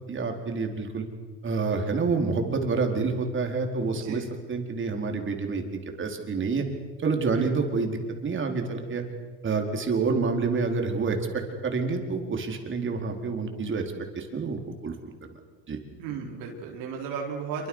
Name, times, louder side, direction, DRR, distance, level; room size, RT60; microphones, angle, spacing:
voice 1, 0.1-1.1 1.4-6.6 7.0-9.0 9.4-11.2 11.6-14.9 15.7-15.8, right 4 dB, 35° right, 3 dB, 4.6 m, -28 dB
voice 2, 3.9-4.3 7.3-7.6 16.0-17.7, right 6 dB, 75° right, 0 dB, 4.7 m, -35 dB
27.0 x 24.5 x 6.5 m, 1.4 s
supercardioid pair, 105°, 34 cm